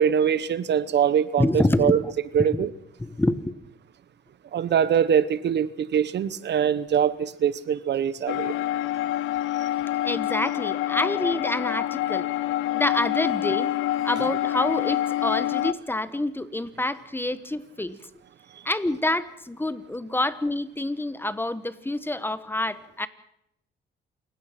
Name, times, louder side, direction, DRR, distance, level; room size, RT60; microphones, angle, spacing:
voice 1, 0.0-2.0 2.3-2.7 4.5-8.6, right 8 dB, 60° right, 1.1 m, -23 dB
voice 2, 1.4-2.1 2.4-2.7 3.0-3.5 10.0-12.3 12.7-13.7 14.0-18.0 18.6-23.1, left 1 dB, 10° left, 1.3 m, -27 dB
sound 1, 8.3-15.7, left 13 dB, 85° left, 0.7 m, -26 dB
28.0 x 16.5 x 6.0 m
cardioid pair, 90°, 20 cm